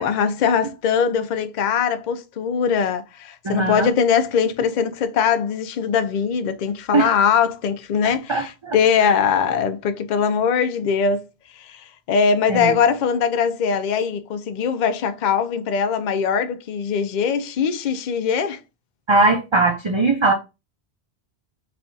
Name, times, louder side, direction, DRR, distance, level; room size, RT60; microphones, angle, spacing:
voice 1, 0.0-11.2 11.6-18.6, left 6 dB, 55° left, 0.6 m, -21 dB
voice 2, 3.4-3.9 6.9-7.1 8.0-8.8 9.0-9.1 12.5-12.8 19.1-20.3, right 3 dB, 35° right, 0.5 m, -20 dB
3.4 x 2.3 x 3.8 m
omnidirectional pair, 1.1 m